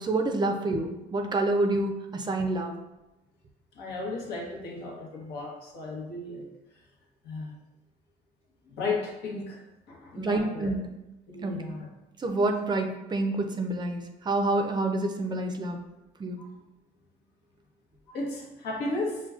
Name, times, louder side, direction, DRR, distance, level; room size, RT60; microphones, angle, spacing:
voice 1, 0.0-2.7 10.2-10.9 11.4-11.8 12.2-15.8 16.2-16.4, right 2 dB, 25° right, 4 dB, 0.4 m, -28 dB
voice 2, 3.7-6.5 7.2-7.5 8.7-9.6 9.9-10.7 11.3-11.9 16.4-16.5 18.1-19.2, left 3 dB, 80° left, -1 dB, 1.0 m, -34 dB
5.7 x 2.2 x 2.4 m, 0.95 s
cardioid pair, 110°, 17 cm